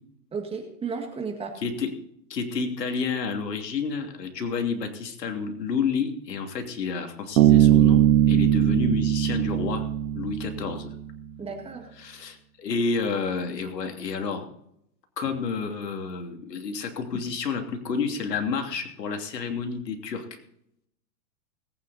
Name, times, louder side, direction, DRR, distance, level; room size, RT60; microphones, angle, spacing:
voice 1, 0.3-1.5 11.4-11.9, right 5 dB, 10° right, 3 dB, 1.9 m, -33 dB
voice 2, 1.5-1.9 2.3-9.8 10.1-10.9 12.0-14.5 15.2-20.2, left 5 dB, 85° left, 4 dB, 3.0 m, -30 dB
Bass guitar, 7.4-10.8, right 11 dB, 65° right, 1.8 m, -20 dB
20.0 x 9.3 x 4.2 m, 0.74 s
hypercardioid pair, 145°, 48 cm